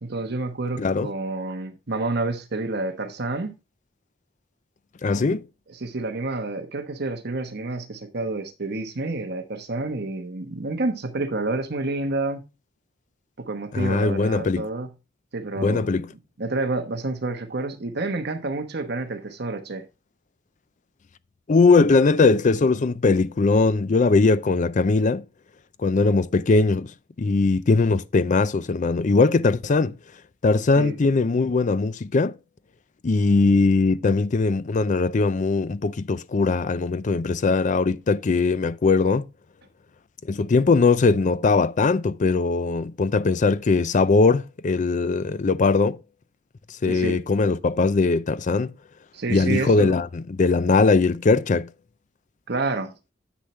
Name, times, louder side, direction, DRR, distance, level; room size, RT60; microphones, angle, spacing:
voice 1, 0.0-3.5 5.7-12.4 13.4-14.9 15.3-15.9 16.4-19.9 30.7-30.9 46.9-47.2 49.1-50.0 52.5-52.9, right 2 dB, 60° right, 1.1 m, -29 dB
voice 2, 0.8-1.1 5.0-5.4 13.7-14.7 15.6-16.1 21.5-25.2 25.8-26.9 27.2-30.0 30.4-32.3 33.0-39.3 40.3-46.0 46.8-48.7 49.3-51.7, left 3 dB, 40° left, 0.4 m, -20 dB
10.0 x 7.3 x 3.1 m
head